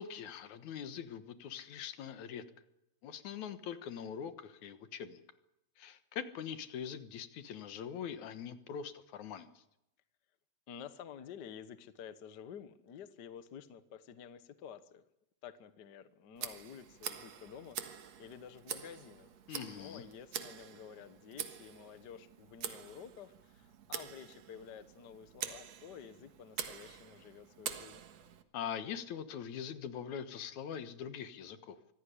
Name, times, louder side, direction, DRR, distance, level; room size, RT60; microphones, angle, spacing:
voice 1, 0.0-2.4 3.0-5.2 5.8-9.5 19.5-20.0 28.5-31.8, left 8 dB, 75° left, 11 dB, 2.7 m, -43 dB
voice 2, 10.7-15.0 15.4-19.4 19.7-28.0, left 8 dB, 55° left, 12 dB, 1.2 m, -51 dB
Tick, 16.4-28.4, right 9 dB, 65° right, 2.6 m, -46 dB
25.0 x 15.0 x 10.0 m, 0.84 s
omnidirectional pair, 3.4 m